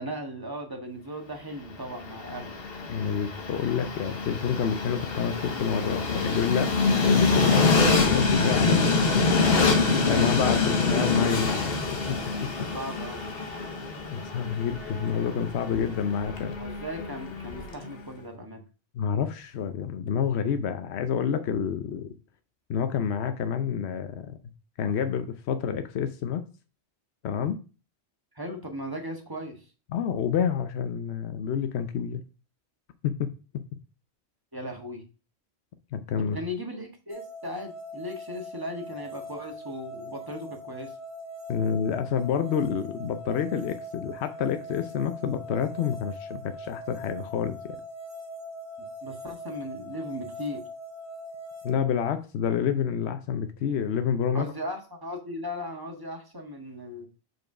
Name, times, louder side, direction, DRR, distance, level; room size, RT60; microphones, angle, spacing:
voice 1, 0.0-2.5 10.9-11.0 12.6-13.3 16.6-18.6 28.3-29.7 34.5-35.0 36.2-40.9 49.0-50.6 54.3-57.1, equal, 20° right, 2 dB, 1.5 m, -37 dB
Train, 1.8-17.9, left 4 dB, 65° left, 1.2 m, -25 dB
voice 2, 2.9-9.2 10.0-11.7 12.1-12.7 14.1-16.6 18.9-22.1 22.7-24.4 24.8-26.4 27.2-27.6 29.9-32.2 33.0-33.3 35.9-36.4 41.5-47.8 51.6-54.5, left 7 dB, 80° left, 9 dB, 0.9 m, -28 dB
sound 1, 37.1-51.7, equal, 50° right, 1.9 m, -41 dB
5.1 x 4.7 x 5.9 m, 0.34 s
omnidirectional pair, 1.1 m